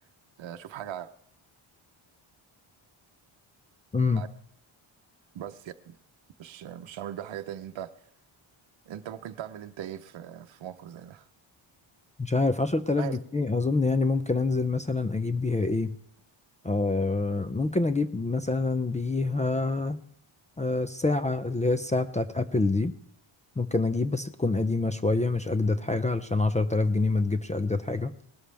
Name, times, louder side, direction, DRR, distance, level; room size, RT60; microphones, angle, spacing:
voice 1, 0.4-1.1 4.1-4.3 5.3-6.0 6.4-7.9 8.9-11.3 13.0-13.2, right 10 dB, 65° right, 0.8 m, -39 dB
voice 2, 3.9-4.2 12.2-16.0 16.6-20.0 20.6-22.9 23.6-28.1, left 3 dB, 15° left, 0.4 m, -26 dB
19.5 x 12.5 x 3.4 m
wide cardioid pair, 160°, 49 cm